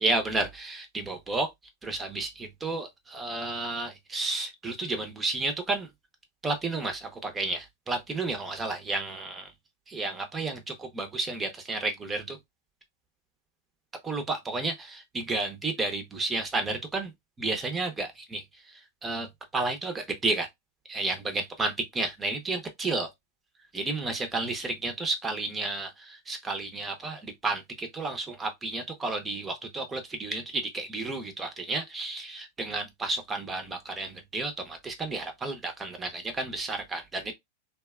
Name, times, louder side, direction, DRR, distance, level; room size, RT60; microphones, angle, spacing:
voice 1, 0.0-1.5 1.8-5.9 6.4-9.5 9.9-12.4 14.0-17.1 17.4-19.3 19.5-20.5 20.9-23.1 23.7-37.3, right 3 dB, 20° right, 0.8 m, -32 dB
2.6 x 2.3 x 2.3 m
hypercardioid pair, 110°, 0 cm